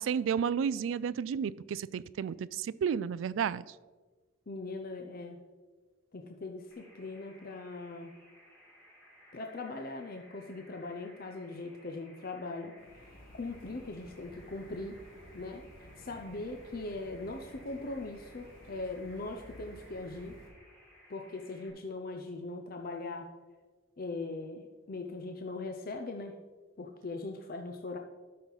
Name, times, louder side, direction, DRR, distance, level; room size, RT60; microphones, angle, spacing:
voice 1, 0.0-3.8, right 7 dB, 70° right, 18 dB, 0.3 m, -32 dB
voice 2, 4.5-5.4 6.1-8.1 9.3-15.0 15.3-15.6 16.0-20.3 21.1-23.3 24.0-26.3 26.8-28.0, left 3 dB, 50° left, 4 dB, 0.6 m, -40 dB
sound 1, 6.7-21.7, equal, 10° left, 2.1 m, -59 dB
sound 2, 12.8-20.5, left 1 dB, 80° left, 1.8 m, -54 dB
12.5 x 5.6 x 4.0 m, 1.4 s
head